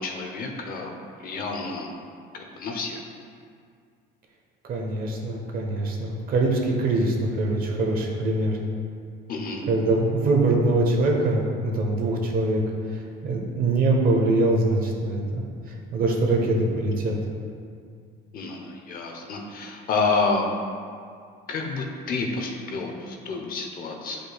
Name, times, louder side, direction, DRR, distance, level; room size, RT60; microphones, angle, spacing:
voice 1, 0.0-1.9 2.4-3.0 9.3-9.6 18.3-20.5 21.5-24.2, left 4 dB, 45° left, 2 dB, 0.8 m, -29 dB
voice 2, 4.7-8.6 9.7-12.6 13.2-15.4 15.9-17.2, right 2 dB, 45° right, 0 dB, 1.1 m, -23 dB
9.8 x 5.2 x 2.3 m, 2.2 s
cardioid pair, 140°, 20 cm